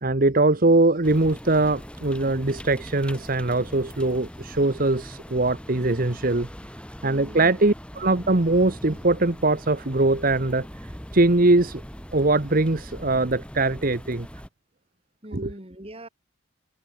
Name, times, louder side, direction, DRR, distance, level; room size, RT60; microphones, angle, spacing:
voice 1, 0.0-6.5 7.0-10.7 11.1-11.8 12.1-14.3 15.3-15.5, right 2 dB, 45° right, 1.2 m, -21 dB
sound 1, 1.0-14.5, equal, 5° left, 4.3 m, -41 dB
voice 2, 7.0-7.5 15.2-16.1, right 1 dB, 30° right, 4.0 m, -42 dB
head